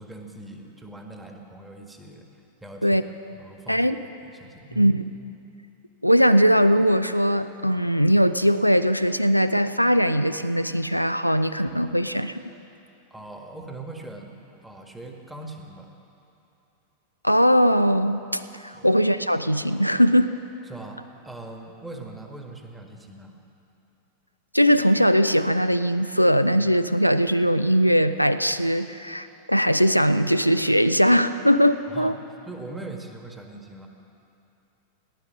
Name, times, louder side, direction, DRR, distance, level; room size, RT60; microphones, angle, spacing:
voice 1, 0.0-2.3 2.6-3.0 3.3-3.9 4.2-5.0 13.1-14.3 14.6-15.9 18.7-18.9 20.6-23.4 31.9-32.1 32.4-33.9, right 2 dB, 5° right, 3 dB, 1.5 m, -41 dB
voice 2, 4.8-5.1 6.0-12.4 17.2-20.3 24.5-32.2, equal, 90° left, 11 dB, 0.4 m, -20 dB
18.0 x 11.0 x 6.4 m, 2.8 s
figure-of-eight pair, 90°, 0 cm